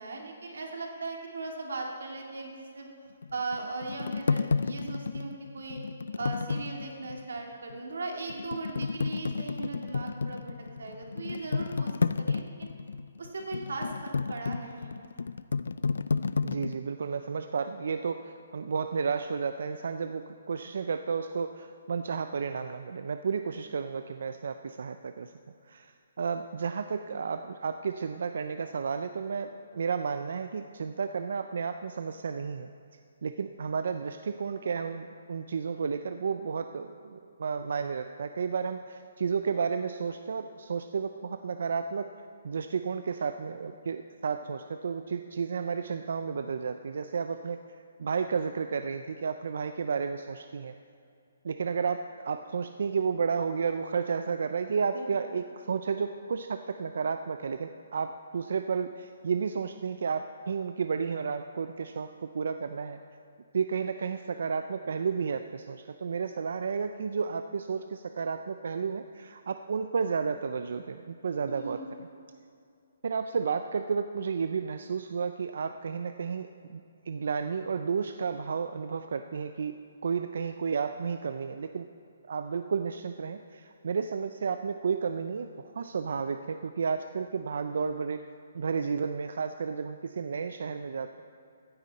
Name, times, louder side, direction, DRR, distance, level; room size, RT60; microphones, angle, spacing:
voice 1, 0.0-2.9 3.3-5.8 6.2-11.9 12.2-12.7 13.2-15.0 54.9-55.1 71.4-71.9, right 3 dB, 90° right, 1 dB, 2.2 m, -38 dB
sound 1, 3.2-7.2 7.7-7.8 8.3-16.8, left 4 dB, 90° left, 0.3 m, -31 dB
voice 2, 16.4-25.3 25.7-32.7 33.2-42.1 42.4-47.6 48.0-50.7 51.4-63.0 63.5-71.8 73.0-76.8 77.1-79.7 80.0-81.9 82.3-88.2 88.5-91.2, right 5 dB, 55° right, 9 dB, 0.4 m, -32 dB
15.5 x 9.8 x 4.1 m, 2.4 s
hypercardioid pair, 175°, 0 cm